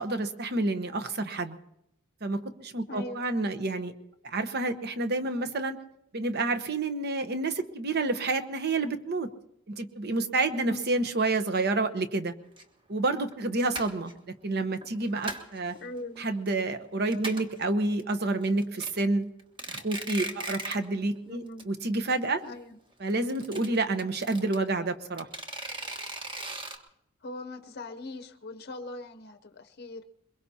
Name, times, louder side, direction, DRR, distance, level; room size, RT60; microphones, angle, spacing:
voice 1, 0.0-1.6 2.2-3.9 4.2-5.8 6.1-9.3 9.7-12.3 12.9-15.7 16.2-19.3 19.7-22.4 23.0-25.3, right 2 dB, 50° right, 9 dB, 1.0 m, -29 dB
voice 2, 2.9-3.7 10.5-10.9 15.8-16.3 21.2-21.7 22.4-22.8 27.2-30.1, left 2 dB, 50° left, 9 dB, 0.7 m, -41 dB
sound 1, 12.6-12.7 13.2-13.4 13.7-14.1 14.8-15.6 16.0-16.5 16.8-16.9 17.1-17.6 18.0-18.1 18.4-18.9 19.4-20.9 21.2-21.3 21.6-21.7 21.9-22.0 23.1-24.6 25.2-26.8, right 2 dB, 25° right, 1.3 m, -37 dB
22.5 x 22.0 x 2.8 m, 0.83 s
head